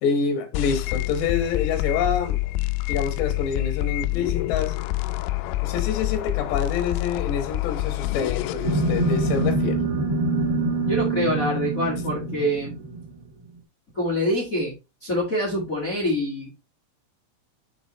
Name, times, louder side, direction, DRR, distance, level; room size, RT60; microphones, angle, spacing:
voice 1, 0.0-2.4 2.9-4.8 5.6-9.8, left 6 dB, 65° left, 3.4 m, -27 dB
sound 1, 0.5-9.5, left 18 dB, 85° left, 2.9 m, -27 dB
sound 2, 8.6-13.2, right 2 dB, 55° right, 1.6 m, -25 dB
voice 2, 10.8-12.7 13.9-14.7 15.0-16.5, equal, 35° left, 1.3 m, -25 dB
6.7 x 5.3 x 4.1 m
omnidirectional pair, 5.8 m